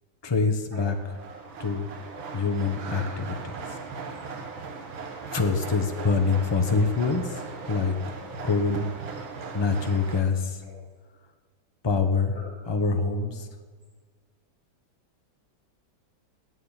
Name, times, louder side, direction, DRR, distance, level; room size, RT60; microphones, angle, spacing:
voice 1, 0.2-0.9 1.6-1.9 2.3-3.5 5.3-7.2 7.7-7.9 8.4-8.9 9.5-10.5 11.8-12.3 12.7-13.3, left 4 dB, 20° left, 6 dB, 0.9 m, -25 dB
sound 1, 0.8-10.2, right 4 dB, 90° right, 2.3 m, -39 dB
voice 2, 2.9-3.5 5.2-5.4 5.9-6.3 7.2-7.6 8.2-8.3 9.0-9.4 10.6-10.7 12.3-12.5, equal, 25° right, -6 dB, 5.4 m, -46 dB
16.5 x 9.5 x 9.0 m, 1.5 s
omnidirectional pair, 2.1 m